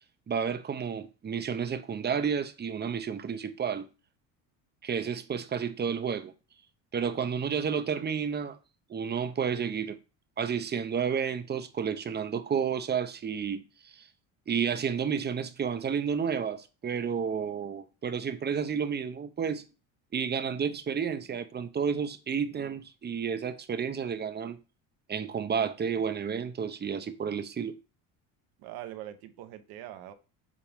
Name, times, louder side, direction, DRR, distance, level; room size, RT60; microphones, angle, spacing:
voice 1, 0.3-3.9 4.8-6.3 6.9-8.6 8.9-10.0 10.4-14.1 14.5-19.6 20.1-24.6 25.1-27.7, right 7 dB, 25° right, 0.8 m, -31 dB
voice 2, 28.6-30.1, right 13 dB, 65° right, 1.1 m, -43 dB
7.5 x 3.8 x 3.5 m
supercardioid pair, 90°, 40 cm